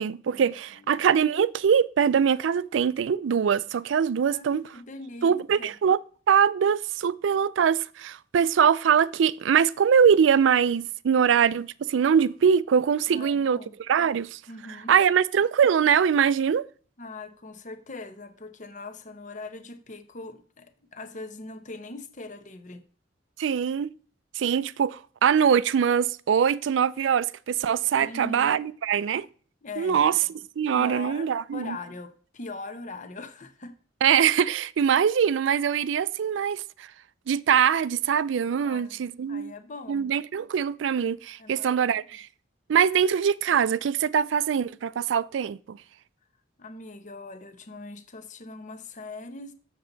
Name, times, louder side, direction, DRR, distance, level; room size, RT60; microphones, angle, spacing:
voice 1, 0.0-4.6 5.2-6.0 6.3-13.6 13.9-14.4 14.9-16.7 23.4-23.9 24.4-29.3 29.8-30.1 30.6-31.8 34.0-36.9 37.3-39.5 39.9-42.3 42.7-45.8, right 7 dB, 85° right, 0.4 m, -23 dB
voice 2, 4.3-5.7 13.1-13.7 14.5-15.0 17.0-22.8 28.0-28.5 29.6-30.3 30.7-33.7 38.6-40.1 41.4-42.0 46.6-49.5, left 3 dB, 45° left, 0.8 m, -41 dB
7.5 x 6.8 x 3.9 m
head